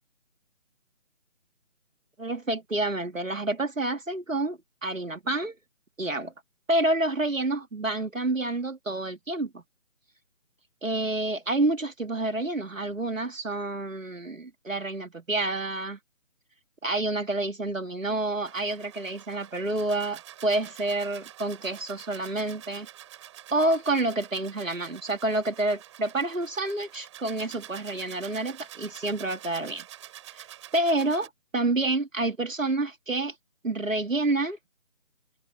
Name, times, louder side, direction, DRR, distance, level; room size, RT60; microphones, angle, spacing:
voice 1, 2.2-5.6 6.0-6.3 6.7-9.6 10.8-16.0 16.8-22.9 23.5-29.8 30.7-33.3 33.6-34.6, right 2 dB, 85° right, 2.8 m, -28 dB
sound 1, 18.4-31.3, right 12 dB, 25° right, 6.5 m, -47 dB
figure-of-eight pair, 155°, 38 cm